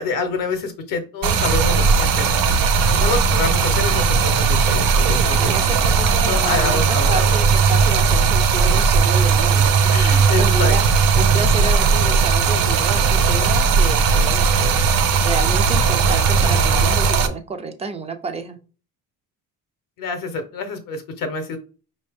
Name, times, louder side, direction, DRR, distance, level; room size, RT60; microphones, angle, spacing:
voice 1, 0.0-2.3 2.9-5.5 6.2-7.3 9.9-10.7 20.0-21.6, left 4 dB, 60° left, 7 dB, 0.7 m, -27 dB
Stream, 1.2-17.3, right 5 dB, 65° right, 0.7 m, -17 dB
voice 2, 4.9-10.9 11.1-14.8 15.1-18.6, right 4 dB, 20° right, 8 dB, 0.3 m, -30 dB
5.2 x 2.7 x 3.4 m, 0.37 s
cardioid pair, 170°, 37 cm